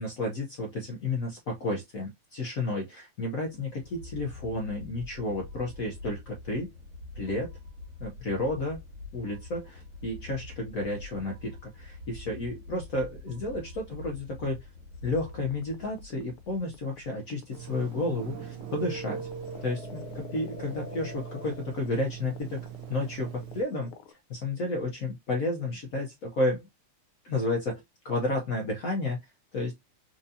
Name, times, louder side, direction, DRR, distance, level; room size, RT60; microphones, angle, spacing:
voice 1, 0.0-6.7 7.1-7.5 8.0-8.8 9.1-14.6 15.0-19.2 19.6-22.6 22.9-26.7 27.2-29.2 29.5-29.7, left 2 dB, 65° left, 0.8 m, -32 dB
sound 1, 3.4-17.6, left 3 dB, 60° right, 2.3 m, -45 dB
sound 2, 15.2-24.1, left 6 dB, 85° left, 1.6 m, -46 dB
Telephone, 17.5-23.6, right 8 dB, 80° right, 1.5 m, -40 dB
4.5 x 2.6 x 2.6 m
omnidirectional pair, 2.4 m